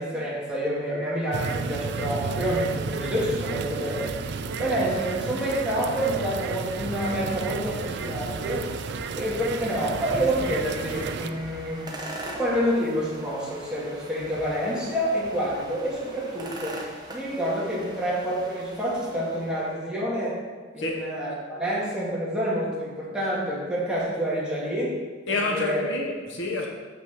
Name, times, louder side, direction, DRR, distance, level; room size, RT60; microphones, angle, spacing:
voice 1, 0.0-4.2 4.6-8.7 9.1-12.0 12.2-20.4 20.7-25.0 25.5-25.8, equal, 5° right, 2.3 m, -28 dB
sound 1, 1.3-11.3, right 5 dB, 60° right, 0.4 m, -32 dB
sound 2, 5.9-19.7, right 1 dB, 20° right, 1.0 m, -42 dB
voice 2, 25.3-26.7, left 2 dB, 65° left, 1.2 m, -28 dB
7.1 x 6.1 x 5.8 m
head